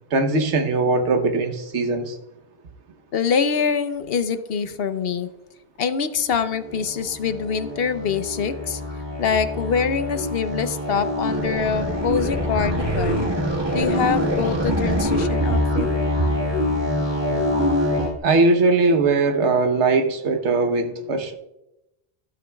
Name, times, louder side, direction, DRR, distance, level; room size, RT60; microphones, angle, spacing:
voice 1, 0.1-2.2 18.2-21.3, right 3 dB, 85° right, 7 dB, 1.3 m, -20 dB
voice 2, 3.1-5.3 5.8-8.8 9.2-13.3 13.7-15.9, left 6 dB, 65° left, 11 dB, 0.9 m, -24 dB
sound 1, 6.7-18.1, left 1 dB, 25° right, 1.7 m, -24 dB
12.5 x 11.5 x 2.3 m, 0.90 s
omnidirectional pair, 1.1 m